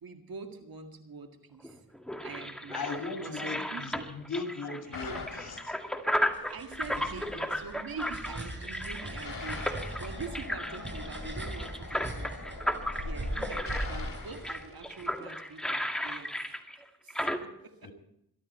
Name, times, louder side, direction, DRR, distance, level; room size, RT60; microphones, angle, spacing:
voice 1, 0.0-1.8 2.2-2.8 3.2-4.0 6.5-12.4 13.0-16.3 17.0-17.9, right 4 dB, 75° right, 5 dB, 2.0 m, -44 dB
sound 1, 1.6-17.4, equal, ahead, 2.0 m, -34 dB
voice 2, 2.7-5.8 7.0-7.5 17.8-17.9, left 3 dB, 80° left, 4 dB, 2.0 m, -38 dB
sound 2, 4.9-6.3 9.0-15.6, left 4 dB, 65° left, 3.1 m, -44 dB
sound 3, 6.1-15.0, right 1 dB, 30° right, 7.9 m, -40 dB
22.0 x 12.5 x 4.4 m, 0.76 s
cardioid pair, 50°, 36 cm